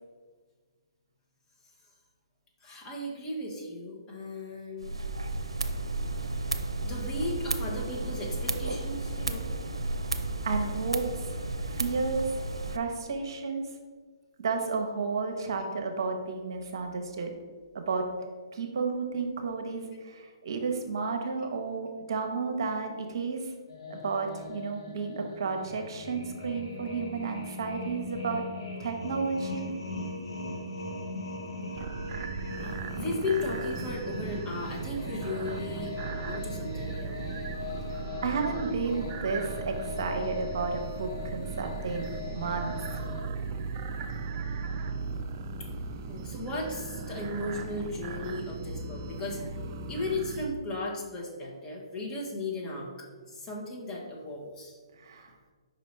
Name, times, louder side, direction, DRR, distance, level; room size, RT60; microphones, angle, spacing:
voice 1, 2.6-4.9 6.8-9.5 12.5-12.6 32.6-35.9 36.2-37.2 45.6-45.7 46.1-49.4 49.9-54.8, left 2 dB, 20° left, -2 dB, 1.2 m, -36 dB
sound 1, 4.8-12.8, right 2 dB, 90° right, 0.5 m, -33 dB
voice 2, 10.4-11.3 11.6-12.3 12.7-13.7 14.4-17.4 17.7-18.1 18.5-23.5 23.9-28.4 28.8-29.7 38.2-42.1 42.3-42.7 55.0-55.3, right 4 dB, 55° right, 4 dB, 0.9 m, -32 dB
sound 2, 23.7-43.2, left 3 dB, 65° left, 1.5 m, -40 dB
sound 3, 31.8-50.5, right 4 dB, 35° right, 0.5 m, -37 dB
5.3 x 4.2 x 4.4 m, 1.5 s
figure-of-eight pair, 135°, 3 cm